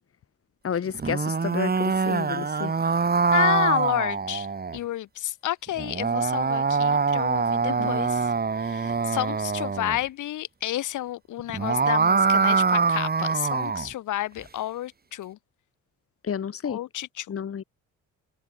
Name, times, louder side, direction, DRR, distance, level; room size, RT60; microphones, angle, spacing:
voice 1, 0.6-2.7 7.6-7.9 16.2-16.8 17.3-17.6, left 8 dB, 50° left, 3.2 m, -31 dB
sound 1, 0.9-4.8 5.8-10.0 11.4-13.9, right 5 dB, 30° right, 3.5 m, -24 dB
voice 2, 3.3-4.5 4.7-8.2 8.6-15.4 16.7-17.3, left 14 dB, 80° left, 3.6 m, -30 dB
cardioid pair, 90°, 30 cm